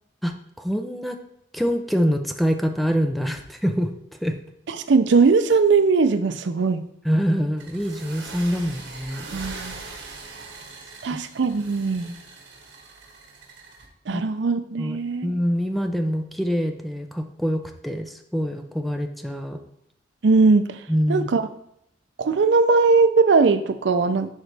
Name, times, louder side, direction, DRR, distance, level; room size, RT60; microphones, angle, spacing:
voice 1, 0.6-1.2 1.5-3.9 4.2-4.4 7.0-9.3 11.1-11.2 14.1-14.2 14.8-15.0 15.2-19.6 20.9-21.3, equal, ahead, 5 dB, 0.5 m, -25 dB
voice 2, 4.7-6.8 9.3-9.8 11.0-12.1 14.1-15.3 20.2-20.8 21.1-21.4 22.2-24.3, right 4 dB, 70° right, 10 dB, 0.5 m, -19 dB
sound 1, 7.6-13.9, right 3 dB, 85° right, 1.4 m, -41 dB
10.5 x 3.9 x 3.3 m, 0.75 s
head